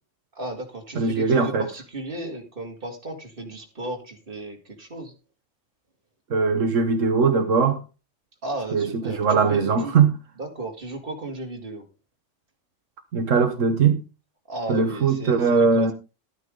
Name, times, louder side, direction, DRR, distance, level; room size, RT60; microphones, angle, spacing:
voice 1, 0.3-5.1 8.4-9.9 10.4-11.9 14.5-15.9, right 2 dB, 45° right, 2.6 m, -34 dB
voice 2, 1.0-1.7 6.3-7.8 8.7-10.2 13.1-14.0 14.7-15.9, right 5 dB, 80° right, 1.5 m, -20 dB
13.0 x 9.4 x 3.8 m
omnidirectional pair, 1.3 m